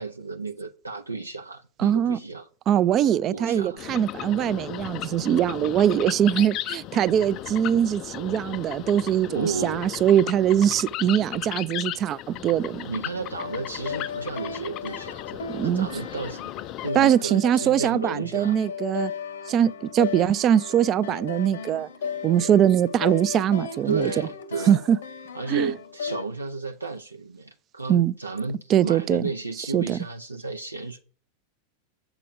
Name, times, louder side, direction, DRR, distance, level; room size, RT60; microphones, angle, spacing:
voice 1, 0.0-2.5 3.3-3.8 9.3-9.8 12.8-16.4 16.8-18.6 23.8-24.8 25.3-31.0, right 3 dB, 80° right, 0.6 m, -33 dB
voice 2, 1.8-2.2 2.7-12.9 15.5-15.9 16.9-19.1 19.5-21.9 22.2-24.1 24.7-25.0 25.5-25.7 27.9-28.1 28.7-29.2 29.7-30.0, right 10 dB, 30° right, 0.4 m, -22 dB
sound 1, 3.8-16.9, left 13 dB, 35° left, 0.4 m, -36 dB
sound 2, 13.4-26.2, left 5 dB, 65° left, 0.9 m, -36 dB
7.5 x 4.9 x 6.5 m
figure-of-eight pair, 90°, 0 cm